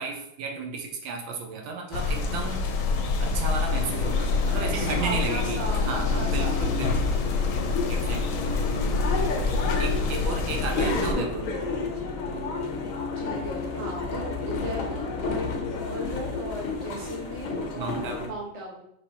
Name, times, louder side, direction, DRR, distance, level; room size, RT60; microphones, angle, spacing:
voice 1, 0.0-2.6 3.2-7.1 7.9-8.4 9.5-11.5 17.7-18.3, right 5 dB, 80° right, 3 dB, 1.5 m, -34 dB
sound 1, 1.9-11.1, left 4 dB, 85° left, 1.5 m, -26 dB
sound 2, 3.7-18.3, left 3 dB, 65° left, 0.8 m, -31 dB
voice 2, 4.6-7.7 9.3-9.9 13.2-18.8, right 1 dB, 30° right, -3 dB, 0.7 m, -37 dB
5.7 x 3.0 x 2.8 m, 0.77 s
omnidirectional pair, 2.1 m